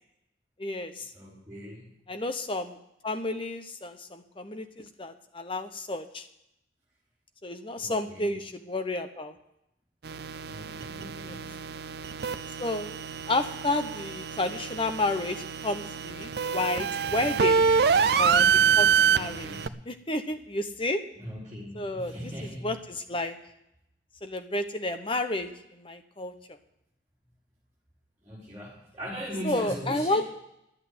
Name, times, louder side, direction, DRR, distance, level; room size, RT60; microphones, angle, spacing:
voice 1, 0.6-1.1 2.1-2.8 3.0-6.3 7.4-9.4 11.2-11.4 12.6-13.0 13.3-17.6 18.2-19.5 19.9-21.0 21.7-22.1 22.6-23.4 24.2-26.3 29.4-30.3, left 2 dB, 25° left, 8 dB, 0.9 m, -31 dB
voice 2, 1.1-1.9 7.8-8.4 10.5-11.6 19.2-19.8 21.1-22.7 28.2-30.2, equal, 15° right, -10 dB, 4.4 m, -40 dB
sound 1, 10.0-19.7, right 6 dB, 55° right, 0.5 m, -26 dB
11.5 x 8.2 x 9.6 m, 0.81 s
head